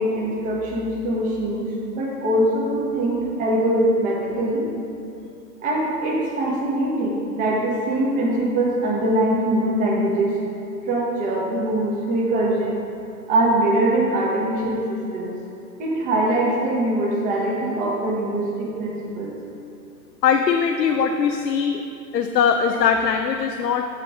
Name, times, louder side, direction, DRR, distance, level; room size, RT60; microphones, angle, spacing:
voice 1, 0.0-1.7 1.9-4.6 5.6-10.3 10.9-12.8 13.3-15.3 15.8-19.3, right 1 dB, 15° right, -4 dB, 1.1 m, -22 dB
voice 2, 20.2-21.8 22.1-23.9, left 7 dB, 80° left, 5 dB, 0.6 m, -20 dB
7.6 x 4.5 x 5.0 m, 2.7 s
hypercardioid pair, 140°, 49 cm